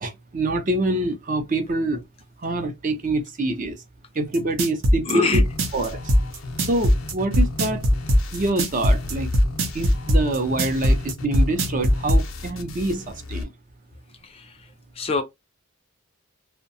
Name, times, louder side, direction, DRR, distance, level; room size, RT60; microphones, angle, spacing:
voice 1, 0.0-2.0 2.4-3.8 4.1-5.4 5.7-6.0 6.6-7.8 8.3-9.3 9.7-13.5, right 2 dB, 40° right, 0.5 m, -25 dB
sound 1, 4.3-12.2, equal, 90° right, 0.7 m, -18 dB
voice 2, 5.0-5.4 14.2-15.2, left 3 dB, 30° left, 0.4 m, -26 dB
sound 2, 5.4-13.4, left 2 dB, 80° left, 0.6 m, -35 dB
2.6 x 2.1 x 2.6 m
head